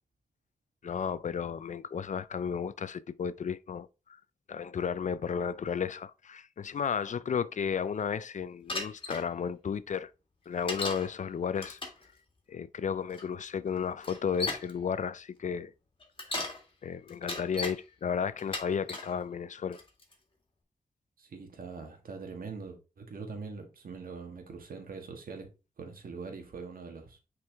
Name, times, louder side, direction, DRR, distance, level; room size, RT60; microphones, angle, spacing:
voice 1, 0.8-3.9 4.5-10.1 10.5-11.8 12.5-15.7 16.8-19.8, left 7 dB, 55° left, 0.4 m, -33 dB
Bicycle, 8.7-9.2 10.7-11.1 11.6-12.0 13.1-13.2 14.0-14.7 16.0-16.6 17.1-17.8 18.4-19.1 19.7-20.1, left 2 dB, 35° left, 1.9 m, -36 dB
voice 2, 21.2-25.5 25.8-27.2, right 4 dB, 75° right, 1.8 m, -43 dB
6.1 x 4.7 x 3.5 m
wide cardioid pair, 95°, 15 cm